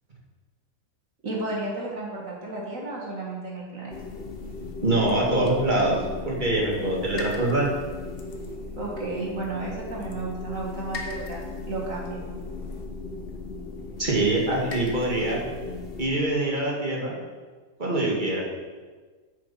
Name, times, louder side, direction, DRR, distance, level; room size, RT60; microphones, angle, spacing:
voice 1, 1.2-4.0 8.8-12.2, right 3 dB, 50° right, -3 dB, 1.9 m, -33 dB
sound 1, 3.9-16.1, left 3 dB, 40° left, 1.1 m, -36 dB
voice 2, 4.8-7.7 14.0-15.4 16.0-17.2 17.8-18.4, right 2 dB, 30° right, -2 dB, 2.0 m, -24 dB
8.4 x 7.0 x 5.7 m, 1.4 s
omnidirectional pair, 1.8 m